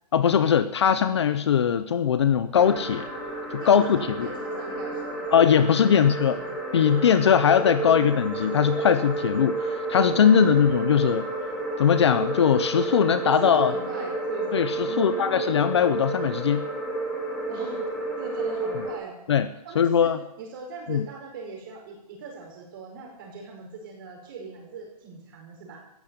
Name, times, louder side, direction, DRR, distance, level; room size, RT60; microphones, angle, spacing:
voice 1, 0.1-3.0 3.5-4.3 5.3-6.4 6.7-11.3 11.8-13.7 14.5-16.6 19.3-19.5 19.8-20.2 20.9-21.1, left 8 dB, 40° left, 12 dB, 0.8 m, -20 dB
sound 1, 2.5-18.9, right 2 dB, 5° left, 3.7 m, -31 dB
voice 2, 3.6-5.3 5.7-6.7 7.8-8.0 10.3-10.6 10.9-11.0 13.4-15.5 17.5-17.8 18.2-19.2 19.6-25.8, right 4 dB, 30° right, 1 dB, 5.2 m, -41 dB
14.5 x 10.5 x 7.9 m, 0.82 s
hypercardioid pair, 175°, 21 cm